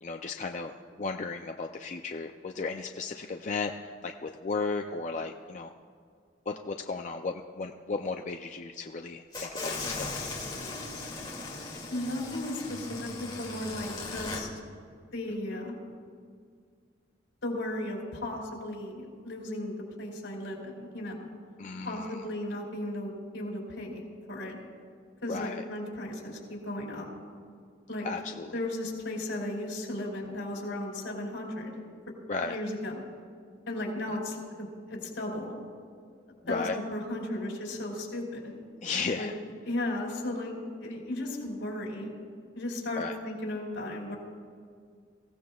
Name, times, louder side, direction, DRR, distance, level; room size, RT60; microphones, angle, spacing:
voice 1, 0.0-5.7 6.5-10.2 21.6-22.2 25.3-25.6 28.0-28.6 32.3-32.6 36.5-36.8 38.8-39.4 43.0-43.2, left 4 dB, 40° left, 4 dB, 0.4 m, -35 dB
sound 1, 9.3-14.4, left 3 dB, 25° left, 2.3 m, -38 dB
voice 2, 11.9-14.5 15.1-15.8 17.4-21.3 21.8-24.6 25.2-27.1 27.9-28.1 28.5-31.8 32.4-33.0 33.7-35.6 36.5-38.5 39.2-39.3 39.6-40.5 40.8-42.1 42.5-44.1, left 1 dB, 80° left, -1 dB, 3.9 m, -35 dB
23.5 x 15.5 x 2.3 m, 2.1 s
head